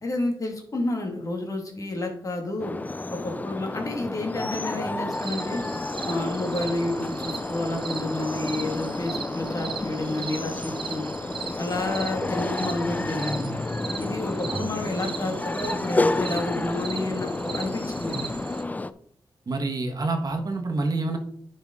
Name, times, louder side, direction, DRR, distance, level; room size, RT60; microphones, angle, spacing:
voice 1, 0.0-2.7 3.1-5.6 6.0-11.1 11.6-13.5 14.0-18.3, left 2 dB, 45° left, 3 dB, 2.0 m, -30 dB
sound 1, 2.6-18.9, left 2 dB, 20° left, 0.4 m, -30 dB
sound 2, 5.1-18.6, right 6 dB, 80° right, 0.8 m, -39 dB
voice 2, 19.5-21.2, right 3 dB, 50° right, 4 dB, 1.4 m, -27 dB
10.5 x 5.5 x 3.7 m, 0.68 s
wide cardioid pair, 95°, 8 cm